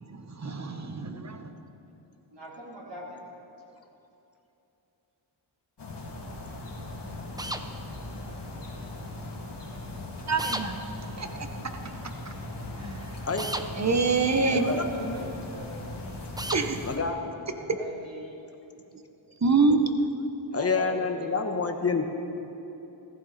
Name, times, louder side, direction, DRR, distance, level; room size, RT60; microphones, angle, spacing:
voice 1, 0.4-1.5 10.3-10.8 11.2-11.5 12.8-12.9 13.8-14.7 16.5-16.8 19.4-19.8, right 4 dB, 35° right, 6 dB, 1.1 m, -25 dB
voice 2, 2.3-3.2 14.5-15.7 17.6-18.4 20.5-21.9, right 1 dB, 60° right, -5 dB, 4.0 m, -41 dB
sound 1, 5.8-17.0, left 2 dB, 60° left, 2.6 m, -39 dB
sound 2, 7.4-7.6 10.4-10.7 13.4-13.7 16.4-16.6, right 1 dB, 10° right, 0.7 m, -32 dB
voice 3, 14.5-15.2 16.8-17.2 19.8-20.0 20.5-22.0, left 4 dB, 30° left, 5 dB, 1.2 m, -28 dB
15.5 x 14.5 x 4.3 m, 2.9 s
cardioid pair, 70°, 47 cm